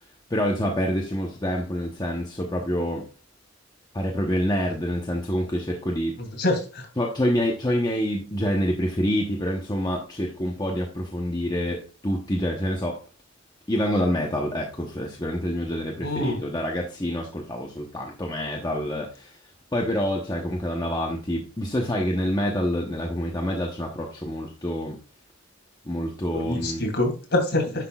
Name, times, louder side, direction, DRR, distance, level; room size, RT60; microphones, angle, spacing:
voice 1, 0.3-3.1 3.9-6.2 7.0-13.0 13.7-19.4 19.7-25.0 25.8-26.8, equal, 20° left, 0 dB, 0.9 m, -27 dB
voice 2, 6.2-6.9 16.0-16.4 26.3-27.9, left 1 dB, 50° left, 1 dB, 2.7 m, -26 dB
10.0 x 5.9 x 2.3 m, 0.35 s
head